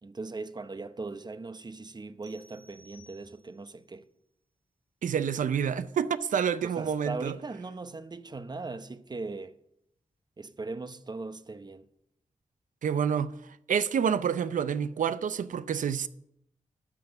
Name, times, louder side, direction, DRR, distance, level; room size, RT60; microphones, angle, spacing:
voice 1, 0.0-4.1 6.6-9.6 10.4-11.8, right 3 dB, 35° right, 0.7 m, -39 dB
sound 1, 2.2-3.8, right 1 dB, 65° right, 2.8 m, -58 dB
voice 2, 5.0-7.4 12.8-13.3 13.7-16.1, right 7 dB, 85° right, 0.5 m, -28 dB
12.5 x 5.9 x 6.5 m
cardioid pair, 70°, 13 cm